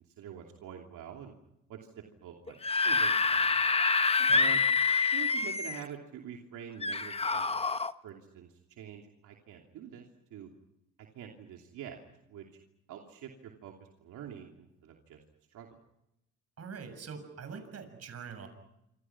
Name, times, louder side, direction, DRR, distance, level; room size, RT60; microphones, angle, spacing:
voice 1, 0.0-1.3 1.7-3.6 4.3-4.6 5.1-10.5 11.1-12.0 12.3-12.5 12.9-13.7 14.0-15.2 15.5-15.7, right 9 dB, 85° right, 1 dB, 3.0 m, -46 dB
Screaming / Screech, 2.5-5.9 6.8-7.9, left 4 dB, 20° left, 1.0 m, -27 dB
voice 2, 4.2-4.5 16.6-18.5, right 6 dB, 55° right, 8 dB, 7.1 m, -44 dB
27.5 x 27.0 x 6.0 m, 0.83 s
cardioid pair, 90°, 30 cm